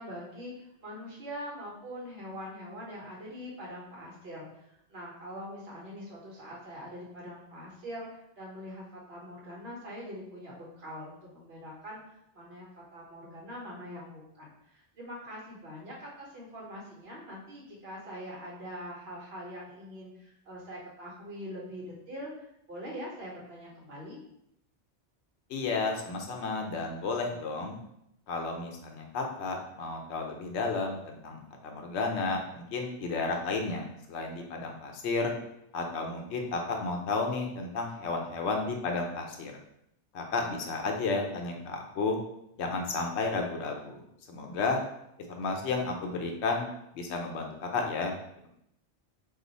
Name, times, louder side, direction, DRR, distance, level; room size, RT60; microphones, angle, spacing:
voice 1, 0.0-24.2, equal, 65° right, -4 dB, 1.1 m, -43 dB
voice 2, 25.5-27.8 28.3-35.3 35.7-39.5 40.1-42.2 42.6-44.8 45.3-46.7 46.9-48.2, left 3 dB, 80° left, 2 dB, 0.9 m, -32 dB
2.4 x 2.3 x 3.9 m, 0.79 s
omnidirectional pair, 1.1 m